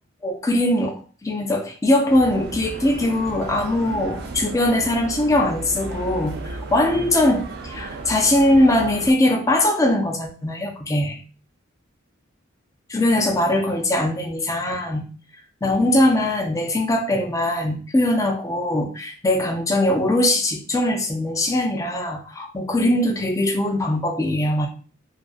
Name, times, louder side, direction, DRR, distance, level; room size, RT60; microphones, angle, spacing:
voice 1, 0.2-1.0 1.2-11.2 12.9-15.1 15.6-24.7, left 1 dB, 15° left, 3 dB, 0.3 m, -21 dB
sound 1, 2.1-9.1, right 2 dB, 50° right, 0.4 m, -34 dB
2.4 x 2.3 x 2.4 m, 0.38 s
head